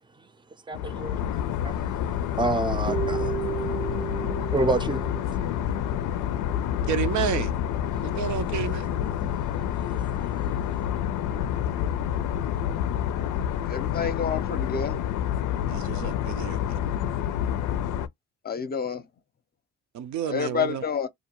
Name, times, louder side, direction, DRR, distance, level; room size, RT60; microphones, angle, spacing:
sound 1, 0.7-18.1, left 10 dB, 85° left, 0.5 m, -28 dB
voice 1, 0.7-1.2 1.6-1.7 2.4-3.7 4.1-5.1 9.4-9.8 10.7-10.8, right 2 dB, 15° right, 0.4 m, -29 dB
sound 2, 2.9-6.9, right 10 dB, 85° right, 1.1 m, -35 dB
voice 2, 6.9-7.6 8.0-8.9 15.7-16.8 19.9-20.8, right 10 dB, 70° right, 0.5 m, -30 dB
voice 3, 13.7-15.0 18.4-19.0 20.3-21.1, left 6 dB, 30° left, 0.6 m, -28 dB
2.5 x 2.2 x 2.9 m
cardioid pair, 90°, 30 cm